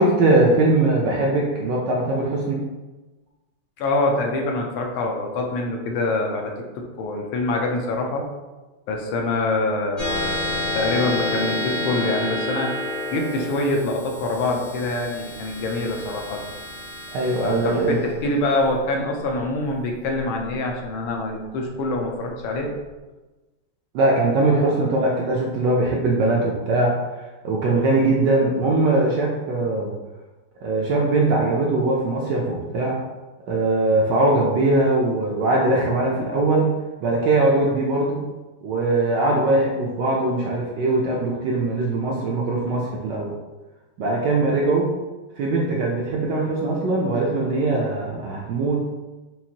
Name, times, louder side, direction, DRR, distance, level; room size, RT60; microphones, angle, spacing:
voice 1, 0.0-2.6 17.1-18.0 23.9-26.9 27.4-29.9 30.6-33.0 33.5-36.7 37.0-38.3 38.6-43.3 44.0-44.9 45.4-48.8, right 2 dB, 75° right, -2 dB, 1.0 m, -21 dB
voice 2, 3.8-6.5 7.0-8.3 8.9-12.7 13.1-16.4 17.4-22.7, left 2 dB, 80° left, 1 dB, 1.4 m, -25 dB
sound 1, 10.0-20.8, left 1 dB, 35° left, 0.6 m, -30 dB
5.6 x 2.5 x 2.7 m, 1.2 s
omnidirectional pair, 2.3 m